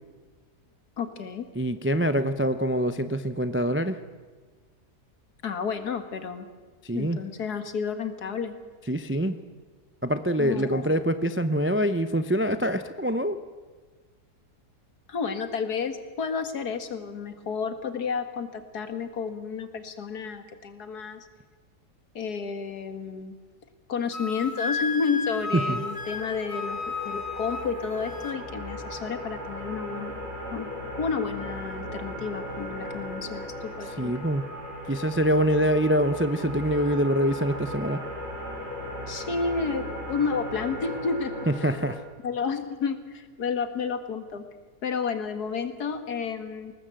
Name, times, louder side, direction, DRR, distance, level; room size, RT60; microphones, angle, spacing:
voice 1, 1.0-1.5 5.4-6.5 6.9-8.5 10.4-10.9 15.1-21.3 22.2-23.3 23.9-30.1 30.5-34.1 39.1-41.3 42.2-44.4 44.8-46.7, left 5 dB, 75° left, 9 dB, 2.1 m, -31 dB
voice 2, 1.5-4.0 6.8-7.2 8.9-9.4 10.0-13.4 25.5-25.8 34.0-34.5 34.9-38.0 41.5-42.0, equal, 20° right, 11 dB, 0.3 m, -25 dB
Wind instrument woodwind instrument, 24.1-28.4, left 3 dB, 20° left, 1.6 m, -33 dB
sound 1, 25.2-42.0, equal, 40° right, 7.2 m, -37 dB
21.5 x 18.5 x 7.7 m, 1.4 s
omnidirectional pair, 1.7 m